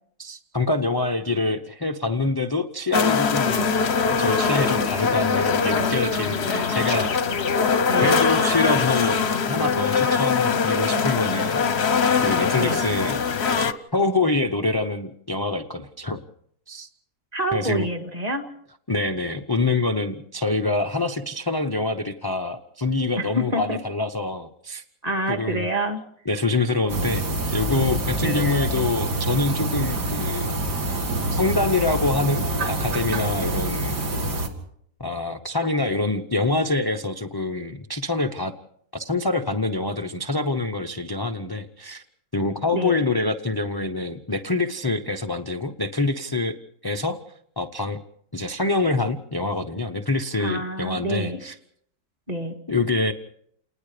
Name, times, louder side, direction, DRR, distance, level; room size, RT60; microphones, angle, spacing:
voice 1, 0.2-3.7 4.1-7.4 8.0-11.7 12.2-13.2 13.9-16.2 16.7-16.9 17.5-17.9 18.9-24.8 25.3-25.6 26.3-27.2 27.5-30.5 31.3-34.0 35.0-38.5 38.9-42.0 42.3-46.6 46.8-47.2 47.6-48.0 48.3-51.5 52.7-53.1, left 2 dB, 25° left, 6 dB, 0.5 m, -25 dB
sound 1, 2.9-13.7, left 5 dB, 45° left, 1.0 m, -22 dB
voice 2, 7.9-8.3 12.6-12.8 17.3-18.5 23.2-23.8 25.0-26.0 28.2-28.5 42.7-43.0 50.4-51.4 52.3-52.6, right 1 dB, 20° right, 5 dB, 2.1 m, -27 dB
sound 2, 26.9-34.5, right 2 dB, 70° right, 2.8 m, -26 dB
29.0 x 20.0 x 5.0 m, 0.68 s
omnidirectional pair, 1.8 m